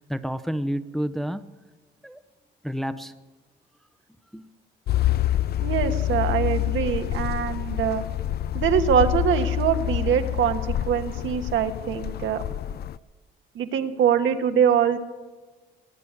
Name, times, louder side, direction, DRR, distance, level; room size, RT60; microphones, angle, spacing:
voice 1, 0.0-1.4 2.0-2.2 2.6-3.1 4.3-4.5, equal, ahead, 0.7 m, -29 dB
sound 1, 4.9-13.0, left 13 dB, 55° left, 0.4 m, -27 dB
voice 2, 5.6-8.0 8.5-12.4 13.5-15.0, right 8 dB, 75° right, 1.3 m, -23 dB
19.0 x 8.0 x 9.6 m
cardioid pair, 90°, 20 cm